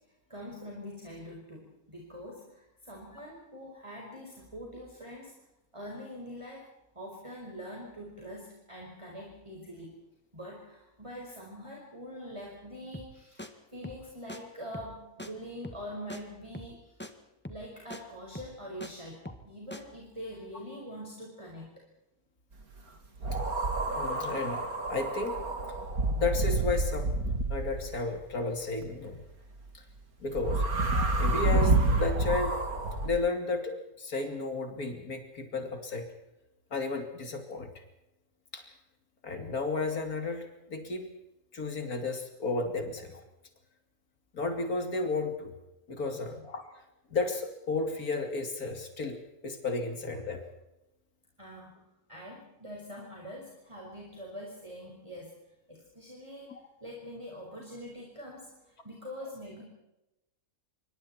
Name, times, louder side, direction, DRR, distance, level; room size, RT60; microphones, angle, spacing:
voice 1, 0.3-5.4 5.7-6.7 6.9-10.0 10.3-17.0 17.5-21.8 51.4-55.4 55.7-59.6, equal, 20° right, -2 dB, 5.4 m, -44 dB
sound 1, 12.9-13.1 13.4-13.5 13.8-14.0 14.3-14.4 14.7-14.9 15.2-15.3 15.6-15.8 16.1-16.2 16.5-16.7 17.0-17.1 17.4-17.6 17.9-18.0 18.3-18.9 19.2-19.5 19.7-19.8, left 1 dB, 5° left, 1.9 m, -42 dB
sound 2, 23.2-28.0 30.3-33.1, right 2 dB, 80° right, 3.2 m, -28 dB
voice 2, 23.9-25.4 26.1-27.1 27.5-29.2 29.7-29.8 30.2-32.5 33.0-36.1 36.7-37.7 38.5-38.7 39.2-41.1 41.5-43.2 44.3-45.6 45.9-46.7 47.1-50.4 56.5-56.6, left 3 dB, 80° left, 5 dB, 3.3 m, -33 dB
26.5 x 25.0 x 4.5 m, 0.94 s
omnidirectional pair, 1.5 m